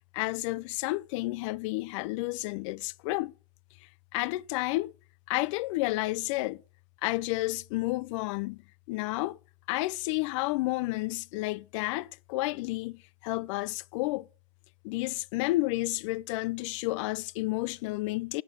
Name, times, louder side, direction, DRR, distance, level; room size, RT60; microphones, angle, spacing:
voice 1, 0.1-3.3 4.1-4.9 5.3-6.6 7.0-8.6 8.9-9.4 9.7-14.3 14.8-18.4, left 20 dB, 60° left, 0.4 m, -31 dB
10.5 x 9.3 x 5.3 m
supercardioid pair, 120°, 18 cm